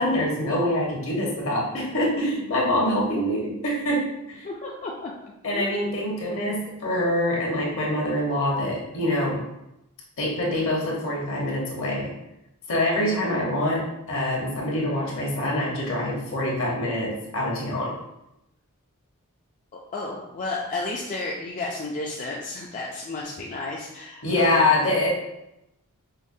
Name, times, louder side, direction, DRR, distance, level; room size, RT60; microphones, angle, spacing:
voice 1, 0.0-4.4 5.4-9.4 10.2-12.1 12.7-13.8 14.1-17.9 24.2-25.1, left 1 dB, 65° left, -3 dB, 1.0 m, -25 dB
voice 2, 4.4-5.1 5.5-5.8 19.9-24.7, left 2 dB, 35° left, -2 dB, 0.3 m, -32 dB
5.2 x 2.1 x 2.6 m, 0.87 s
head